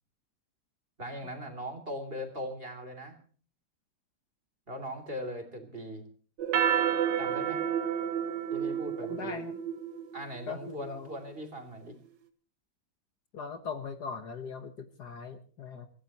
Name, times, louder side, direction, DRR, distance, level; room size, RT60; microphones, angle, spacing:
voice 1, 1.0-3.2 4.7-6.0 7.2-7.6 8.5-9.4 10.1-12.0, equal, 30° right, 6 dB, 3.3 m, -39 dB
sound 1, 6.4-11.1, right 9 dB, 65° right, 1.8 m, -30 dB
voice 2, 9.1-9.6 10.5-11.1 13.3-15.9, left 5 dB, 55° left, 8 dB, 1.7 m, -40 dB
25.5 x 15.5 x 3.0 m, 0.42 s
omnidirectional pair, 2.1 m